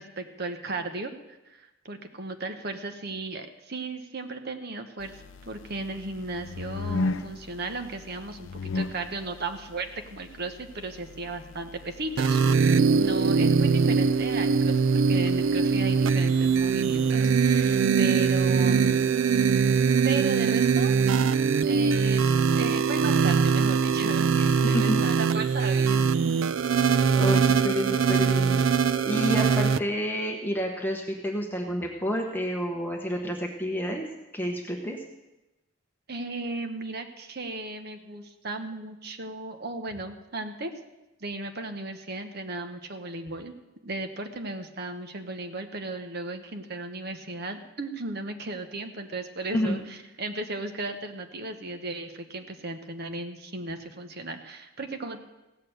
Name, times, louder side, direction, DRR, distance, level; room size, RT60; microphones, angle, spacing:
voice 1, 0.0-19.1 20.0-20.9 21.6-24.4 24.6-26.1 36.1-40.7 41.2-43.5 43.8-55.2, right 2 dB, 50° right, 6 dB, 1.1 m, -35 dB
sound 1, 5.0-17.2, left 3 dB, 65° left, 0.5 m, -38 dB
sound 2, 12.2-29.8, right 5 dB, 70° right, 0.4 m, -22 dB
voice 2, 24.4-25.0 27.1-28.6 29.0-34.0 34.3-35.0 49.5-49.8, equal, 10° left, 1 dB, 1.0 m, -29 dB
16.0 x 6.7 x 7.9 m, 1.0 s
head